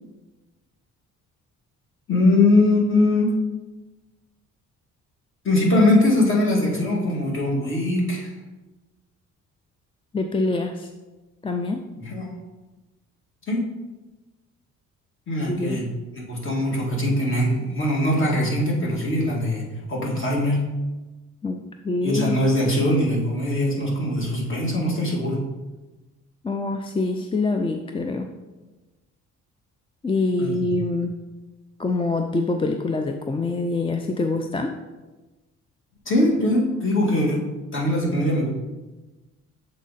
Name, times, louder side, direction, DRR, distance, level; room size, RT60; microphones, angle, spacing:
voice 1, 2.1-3.3 5.4-8.3 12.0-12.3 13.5-13.6 15.3-20.6 22.0-25.4 30.4-30.7 36.1-37.4 37.7-38.5, left 1 dB, 40° left, -3 dB, 2.1 m, -21 dB
voice 2, 10.1-10.9 11.4-11.8 15.5-15.8 21.4-22.4 26.4-28.3 30.0-31.1 31.8-34.7, left 3 dB, 20° left, 5 dB, 0.4 m, -25 dB
7.3 x 3.8 x 4.1 m, 1.2 s
cardioid pair, 90°, 30 cm